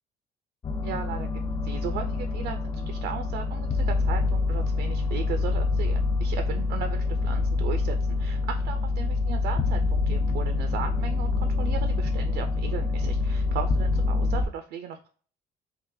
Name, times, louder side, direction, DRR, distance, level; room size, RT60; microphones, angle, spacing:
sound 1, 0.6-14.4, left 3 dB, 25° left, 0.3 m, -26 dB
voice 1, 0.8-1.3 1.6-15.1, right 8 dB, 75° right, 6 dB, 0.4 m, -36 dB
2.6 x 2.4 x 3.6 m, 0.43 s
cardioid pair, 110°, 17 cm